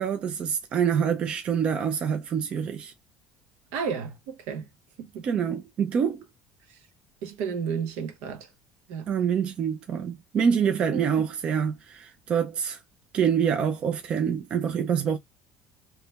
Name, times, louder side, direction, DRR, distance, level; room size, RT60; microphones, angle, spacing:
voice 1, 0.0-2.9 5.2-6.2 9.1-12.8 13.1-15.2, right 7 dB, 35° right, 0.5 m, -26 dB
voice 2, 3.7-4.7 5.0-5.4 7.2-8.5 8.9-9.1 10.9-11.1, right 6 dB, 80° right, 1.2 m, -32 dB
3.2 x 2.9 x 3.3 m
cardioid pair, 155°, 3 cm